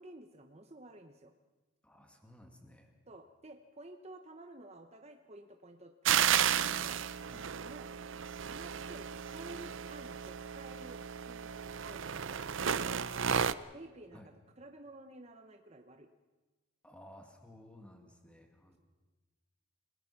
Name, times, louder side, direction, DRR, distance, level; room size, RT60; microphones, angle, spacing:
voice 1, 0.0-1.3 3.1-7.0 7.6-7.9 8.5-12.4 12.7-13.2 13.7-16.1, right 2 dB, 30° right, 6 dB, 0.9 m, -52 dB
voice 2, 1.8-2.9 7.2-7.5 14.1-14.3 16.8-18.8, left 1 dB, 5° left, 4 dB, 2.2 m, -56 dB
sound 1, 6.0-13.5, right 8 dB, 65° right, 0.6 m, -33 dB
29.0 x 17.5 x 5.9 m, 1.2 s
head